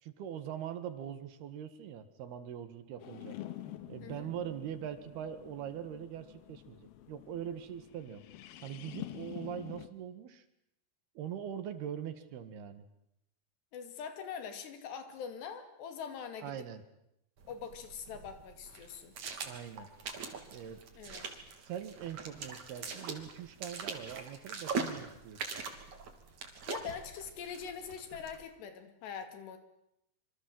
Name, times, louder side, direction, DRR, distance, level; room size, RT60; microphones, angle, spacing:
voice 1, 0.0-3.4 3.9-8.2 8.6-10.4 11.2-12.9 16.4-16.8 19.5-19.9 20.5-20.9 21.6-25.4, right 9 dB, 70° right, 10 dB, 3.7 m, -42 dB
sound 1, 3.0-9.9, left 13 dB, 70° left, 3.1 m, -47 dB
voice 2, 13.7-16.5 17.5-19.2 21.0-21.3 26.7-29.6, left 7 dB, 85° left, 8 dB, 4.7 m, -43 dB
sound 2, 17.4-28.4, right 5 dB, 50° right, 4.1 m, -42 dB
26.5 x 25.5 x 7.9 m, 0.82 s
omnidirectional pair, 4.7 m